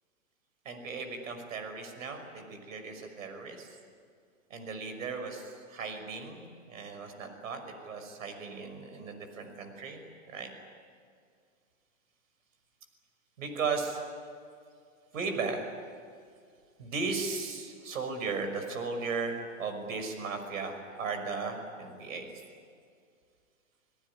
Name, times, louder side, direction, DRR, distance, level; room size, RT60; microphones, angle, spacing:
voice 1, 0.6-3.8 4.5-10.0 10.3-10.5 13.4-14.0 15.1-15.6 16.8-22.3, right 4 dB, 75° right, 6 dB, 5.9 m, -36 dB
28.0 x 18.5 x 9.9 m, 2.2 s
hypercardioid pair, 140°, 41 cm